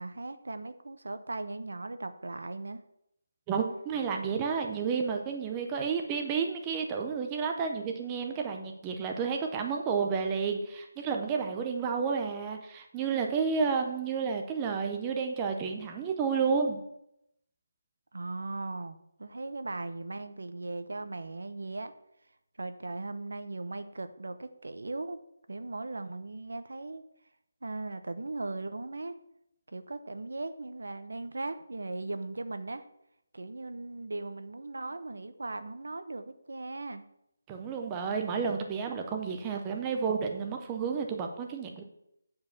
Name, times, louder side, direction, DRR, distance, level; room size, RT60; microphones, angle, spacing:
voice 1, 0.0-2.8 18.1-21.9 22.6-25.2 25.5-27.0 27.6-29.2 29.7-32.9 33.3-37.0, right 2 dB, 80° right, 11 dB, 0.9 m, -38 dB
voice 2, 3.5-16.8 37.5-41.9, right 5 dB, 10° right, 3 dB, 0.5 m, -31 dB
8.7 x 4.9 x 7.1 m, 0.79 s
figure-of-eight pair, 175°, 0 cm